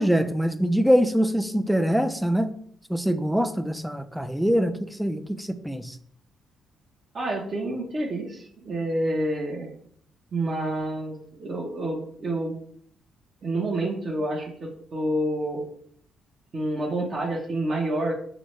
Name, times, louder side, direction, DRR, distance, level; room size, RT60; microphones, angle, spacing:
voice 1, 0.0-2.5 2.9-6.0, equal, ahead, 10 dB, 0.4 m, -24 dB
voice 2, 7.1-9.7 10.3-12.5 13.4-15.6 16.5-18.1, right 1 dB, 45° right, -3 dB, 0.8 m, -28 dB
6.0 x 2.1 x 3.1 m, 0.62 s
cardioid pair, 90°, 0 cm